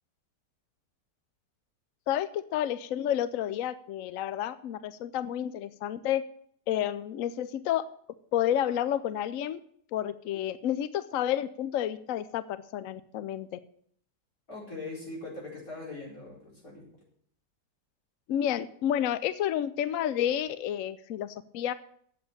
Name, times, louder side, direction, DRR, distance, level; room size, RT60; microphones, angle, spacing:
voice 1, 2.1-6.2 6.7-7.9 8.3-9.6 9.9-13.6 18.3-21.7, left 11 dB, 70° left, 14 dB, 0.8 m, -30 dB
voice 2, 14.5-16.9, left 2 dB, 50° left, -4 dB, 5.1 m, -41 dB
8.1 x 7.9 x 8.8 m, 0.64 s
omnidirectional pair, 1.9 m